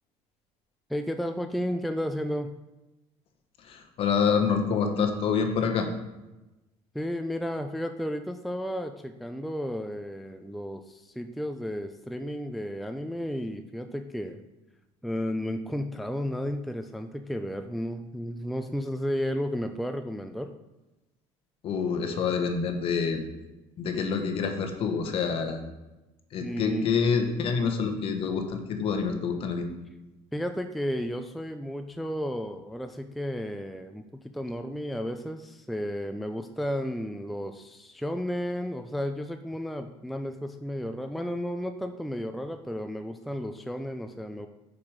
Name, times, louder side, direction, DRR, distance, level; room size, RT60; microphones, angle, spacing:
voice 1, 0.9-2.5 6.9-14.4 15.0-20.5 26.4-26.9 30.3-44.5, equal, ahead, 7 dB, 0.4 m, -33 dB
voice 2, 3.6-5.9 21.6-23.2 23.8-25.6 26.3-29.7, left 6 dB, 50° left, 5 dB, 1.3 m, -27 dB
6.9 x 5.0 x 6.4 m, 1.0 s
cardioid pair, 135°, 12 cm